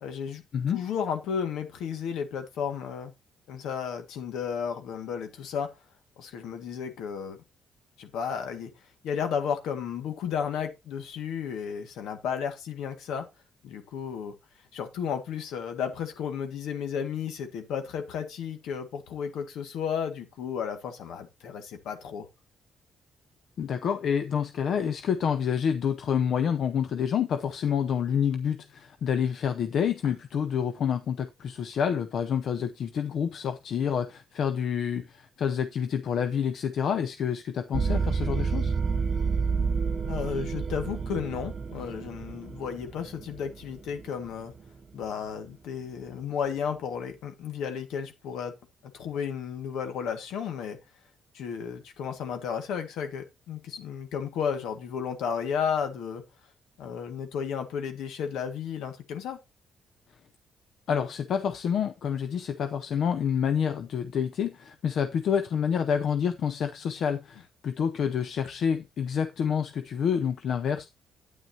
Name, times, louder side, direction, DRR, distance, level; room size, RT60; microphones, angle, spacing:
voice 1, 0.0-0.4 0.7-3.1 3.5-5.7 6.2-7.4 8.0-8.7 9.0-13.3 13.6-14.3 14.7-22.3 30.0-30.2 40.1-44.5 44.9-48.5 48.9-50.8 51.3-56.2 56.8-59.4, left 7 dB, 85° left, 1.8 m, -33 dB
voice 2, 23.6-38.7 60.9-70.9, left 7 dB, 65° left, 0.6 m, -28 dB
sound 1, 37.7-44.7, right 5 dB, 45° right, 0.8 m, -30 dB
9.2 x 9.2 x 2.8 m
cardioid pair, 90°, 0 cm